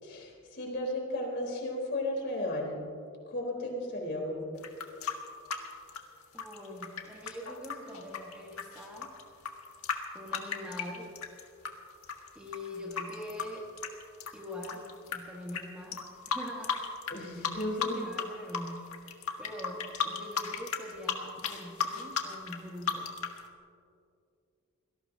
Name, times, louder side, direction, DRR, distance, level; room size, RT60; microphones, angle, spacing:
voice 1, 0.0-2.8 3.3-4.5 17.1-18.0, left 1 dB, 50° left, 0 dB, 3.8 m, -34 dB
sound 1, 4.6-11.7 12.0-15.2 15.5-15.6 15.9-17.2 17.4-18.2 18.5-23.4, left 7 dB, 85° left, 1.7 m, -34 dB
voice 2, 6.3-9.1 10.1-11.1 12.3-13.7 14.3-16.8 17.1-23.3, left 1 dB, 5° right, -3 dB, 1.5 m, -43 dB
25.5 x 18.0 x 2.8 m, 2.4 s
head